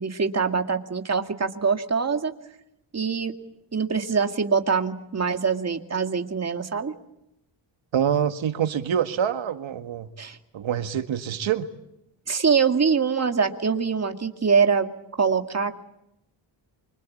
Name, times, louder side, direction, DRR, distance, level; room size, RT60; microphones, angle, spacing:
voice 1, 0.0-2.3 2.9-3.3 3.7-6.9 10.2-10.4 12.3-14.9 15.2-15.8, right 5 dB, 35° right, 6 dB, 2.1 m, -24 dB
voice 2, 7.9-10.1 10.5-11.7, right 9 dB, 90° right, 8 dB, 1.9 m, -25 dB
25.5 x 24.5 x 8.6 m, 0.83 s
wide cardioid pair, 140°, 45 cm